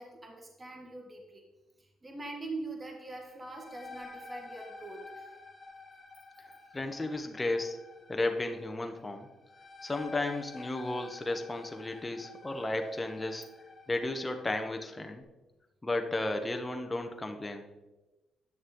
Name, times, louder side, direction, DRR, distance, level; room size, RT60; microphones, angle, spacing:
voice 1, 0.0-1.4 2.0-5.2, right 2 dB, 25° right, 1 dB, 1.6 m, -43 dB
sound 1, 3.3-14.7, left 3 dB, 35° left, 2.4 m, -51 dB
voice 2, 6.7-7.8 8.1-9.3 9.8-13.5 13.9-15.2 15.8-17.8, left 2 dB, 20° left, 5 dB, 1.0 m, -34 dB
9.4 x 6.4 x 3.8 m, 1.1 s
cardioid pair, 90°, 0 cm